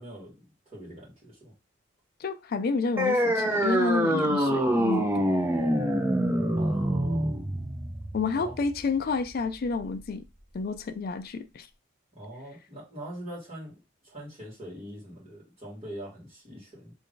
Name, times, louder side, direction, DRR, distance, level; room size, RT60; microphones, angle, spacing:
voice 1, 0.0-1.5 6.6-7.5 8.3-8.6 12.2-13.8 14.0-16.9, right 1 dB, 30° right, 2.0 m, -43 dB
voice 2, 2.2-5.3 8.1-10.2 10.5-11.7, left 4 dB, 45° left, 0.3 m, -30 dB
sound 1, 3.0-10.0, equal, 10° right, 0.5 m, -26 dB
3.2 x 2.6 x 3.7 m
head